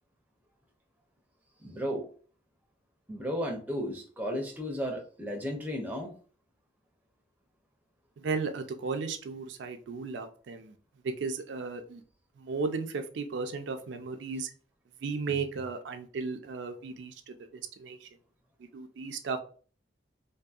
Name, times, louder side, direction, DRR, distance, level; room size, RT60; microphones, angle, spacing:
voice 1, 1.6-2.1 3.1-6.1, equal, 10° right, 1 dB, 0.5 m, -34 dB
voice 2, 8.2-10.7 11.0-12.0 12.4-14.5 15.0-18.1 18.7-19.4, right 4 dB, 75° right, 6 dB, 0.4 m, -35 dB
2.6 x 2.5 x 2.3 m, 0.41 s
head